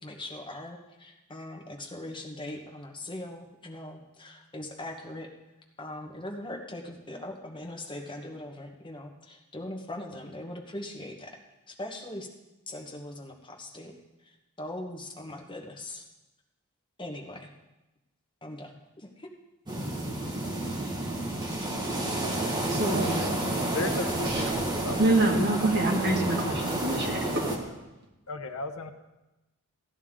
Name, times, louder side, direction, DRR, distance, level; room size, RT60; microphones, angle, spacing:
voice 1, 0.0-5.3 5.8-11.4 11.7-12.3 12.7-13.9 14.2-16.0 17.0-17.5 18.4-19.3, left 1 dB, 20° left, 1 dB, 1.2 m, -40 dB
sound 1, 19.7-27.6, right 1 dB, 20° right, 1.6 m, -30 dB
voice 2, 22.7-23.4 24.3-24.5 25.0-27.5, right 2 dB, 50° right, -1 dB, 2.0 m, -26 dB
voice 3, 23.7-25.0 26.8-26.9 28.3-28.9, left 2 dB, 70° left, 7 dB, 1.0 m, -35 dB
16.5 x 10.5 x 3.7 m, 1.0 s
head